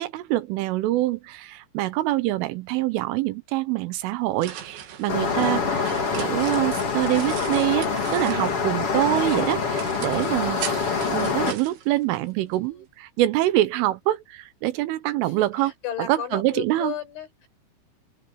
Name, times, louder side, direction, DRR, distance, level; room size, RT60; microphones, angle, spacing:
voice 1, 0.0-15.7 16.1-16.9, right 16 dB, 90° right, 3.6 m, -25 dB
sound 1, 4.0-8.7 9.1-12.6, right 9 dB, 70° right, 4.6 m, -40 dB
sound 2, 5.1-11.5, left 5 dB, 35° left, 3.0 m, -25 dB
voice 2, 12.4-12.9 15.2-17.5, left 10 dB, 70° left, 7.7 m, -35 dB
open air
omnidirectional pair, 5.6 m